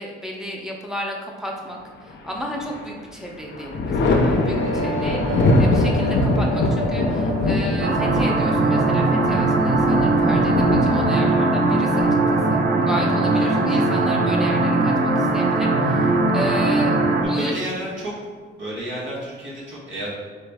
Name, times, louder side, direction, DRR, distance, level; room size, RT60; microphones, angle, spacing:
voice 1, 0.0-16.9 17.3-17.6, equal, ahead, -1 dB, 0.7 m, -33 dB
Thunder, 2.1-2.9 3.2-12.8 14.3-15.1, left 2 dB, 65° left, 0.6 m, -23 dB
sound 1, 4.4-10.3, equal, 90° right, 0.9 m, -30 dB
voice 2, 5.9-6.2 13.3-13.8 17.2-18.1 18.5-20.1, right 1 dB, 65° right, -5 dB, 1.5 m, -32 dB
sound 2, 7.8-17.2, right 2 dB, 50° right, 0.6 m, -19 dB
3.9 x 3.1 x 3.5 m, 1.5 s
cardioid pair, 90°, 20 cm